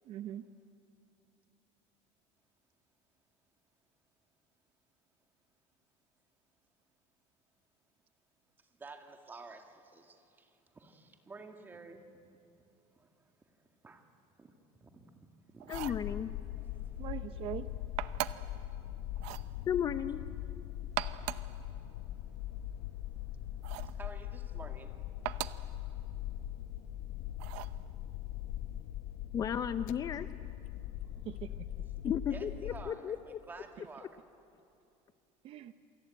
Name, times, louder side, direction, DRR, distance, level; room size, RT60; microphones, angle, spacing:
voice 1, 0.1-0.5 17.0-17.7 31.2-31.7 35.4-35.7, right 11 dB, 40° right, 11 dB, 0.7 m, -41 dB
voice 2, 8.6-12.0 13.0-13.3 13.8-14.0 14.4-14.5 14.8-15.2 15.5-16.0 16.6-17.1 19.1-19.7 21.6-24.9 32.0-34.1, right 3 dB, 15° right, 5 dB, 2.0 m, -52 dB
sound 1, 15.6-16.1 18.0-18.6 19.2-19.5 20.8-21.5 23.6-24.0 25.2-25.7 27.4-27.8, right 17 dB, 75° right, 0.8 m, -39 dB
sound 2, 15.7-32.9, left 12 dB, 60° left, 0.7 m, -41 dB
voice 3, 15.7-16.3 19.7-20.2 29.3-30.3 32.0-33.4, left 8 dB, 25° left, 12 dB, 0.6 m, -34 dB
28.0 x 24.0 x 8.9 m, 2.6 s
cardioid pair, 170°, 14 cm